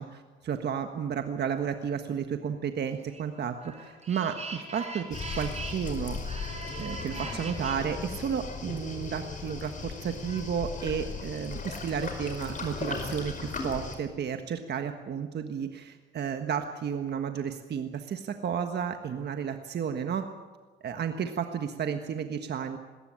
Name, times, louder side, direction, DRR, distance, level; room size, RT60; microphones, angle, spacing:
voice 1, 0.0-6.2 6.8-20.3 20.8-22.8, right 7 dB, 55° right, 6 dB, 1.5 m, -32 dB
sound 1, 3.1-7.8, right 3 dB, 35° right, 5.6 m, -41 dB
Waves surf, 5.1-14.0, left 4 dB, 40° left, 5.1 m, -37 dB
20.0 x 18.0 x 8.8 m, 1.3 s
cardioid pair, 90°, 20 cm